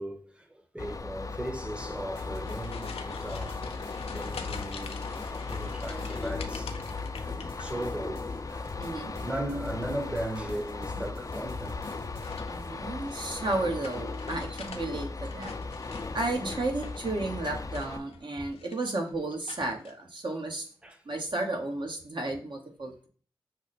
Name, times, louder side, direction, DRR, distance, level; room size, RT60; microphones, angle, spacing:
voice 1, 0.0-6.7 7.6-11.8 18.4-18.5 20.8-21.0, right 1 dB, 10° right, 0.9 m, -38 dB
sound 1, 0.8-18.0, left 3 dB, 35° left, 0.5 m, -37 dB
sound 2, 2.1-13.0, left 4 dB, 70° left, 0.9 m, -45 dB
sound 3, 2.2-8.1 8.4-9.0 10.4-10.8 11.8-14.8 15.2-17.2 17.7-18.3 18.5-19.0 19.5-19.9, left 5 dB, 90° left, 0.5 m, -45 dB
voice 2, 8.8-9.1 12.5-15.5 16.1-20.7 21.0-23.1, right 2 dB, 55° right, 1.2 m, -33 dB
5.8 x 2.1 x 4.1 m
cardioid pair, 45°, 10 cm